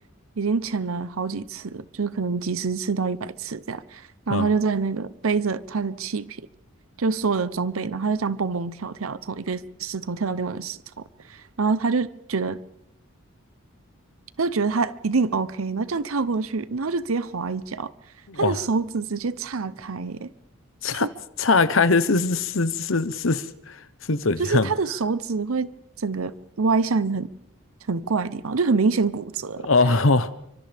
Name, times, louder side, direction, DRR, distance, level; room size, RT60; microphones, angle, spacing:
voice 1, 0.4-6.5 7.0-10.8 11.3-12.6 14.4-17.9 18.4-20.3 20.9-21.1 24.4-25.7 26.0-27.3 27.9-29.7, right 4 dB, 90° right, 0.8 m, -26 dB
voice 2, 18.3-18.6 20.8-21.1 21.4-23.8 24.1-24.7 29.6-30.3, left 3 dB, 70° left, 1.0 m, -21 dB
30.0 x 25.0 x 3.5 m
head